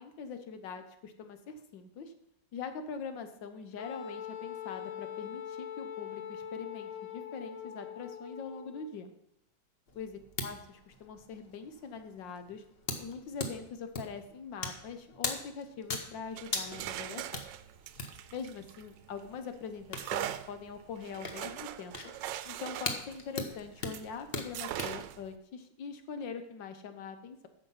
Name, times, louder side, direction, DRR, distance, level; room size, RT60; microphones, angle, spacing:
voice 1, 0.0-2.1 2.5-9.1 10.0-12.6 13.0-17.2 18.3-22.0 22.4-27.5, left 5 dB, 90° left, 8 dB, 1.7 m, -43 dB
Wind instrument woodwind instrument, 3.8-8.9, left 8 dB, 70° left, 1.6 m, -42 dB
sound 1, 9.9-25.0, left 3 dB, 40° left, 1.2 m, -42 dB
sound 2, 16.2-19.3 19.9-24.1 24.5-25.3, right 12 dB, 85° right, 1.3 m, -41 dB
9.9 x 6.8 x 5.6 m, 0.78 s
omnidirectional pair, 1.9 m